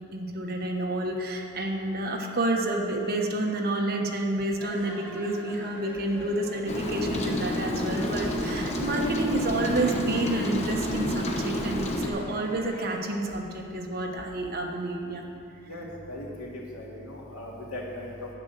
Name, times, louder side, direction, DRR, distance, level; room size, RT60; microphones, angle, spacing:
voice 1, 0.0-15.3, right 1 dB, 45° right, 1 dB, 1.2 m, -29 dB
sound 1, 4.6-13.0, equal, 10° left, 1.9 m, -43 dB
Rain, 6.7-12.1, left 1 dB, 30° left, 1.0 m, -29 dB
voice 2, 15.7-18.3, left 1 dB, 75° left, -3 dB, 2.4 m, -38 dB
10.5 x 8.8 x 6.6 m, 2.7 s
head